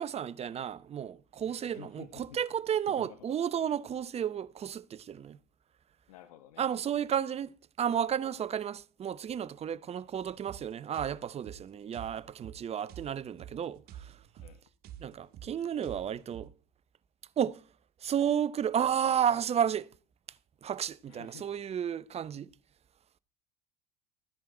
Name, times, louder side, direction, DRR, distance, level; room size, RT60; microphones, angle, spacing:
voice 1, 0.0-5.4 6.6-14.2 15.0-16.5 17.4-17.6 18.0-19.9 20.6-22.5, right 9 dB, 35° right, 0.8 m, -32 dB
voice 2, 1.4-2.4 2.9-3.4 6.1-6.7 14.4-14.6 21.1-21.5, left 11 dB, 75° left, 1.0 m, -52 dB
sound 1, 10.2-16.5, right 10 dB, 55° right, 1.6 m, -49 dB
14.5 x 10.5 x 3.9 m
hypercardioid pair, 75°, 19 cm